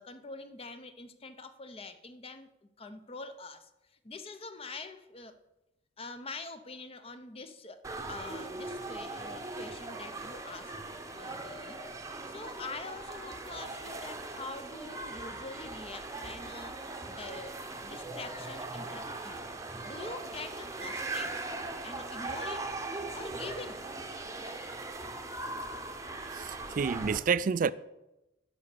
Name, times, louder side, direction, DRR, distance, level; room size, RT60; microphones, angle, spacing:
voice 1, 0.0-5.4 6.0-7.8 8.1-10.7 11.1-21.4 21.8-22.7 23.1-23.8, left 3 dB, 30° left, 0.7 m, -45 dB
sound 1, 7.8-27.2, right 2 dB, 15° right, 0.8 m, -40 dB
voice 2, 26.3-27.7, right 6 dB, 45° right, 0.3 m, -29 dB
11.5 x 5.3 x 6.7 m
head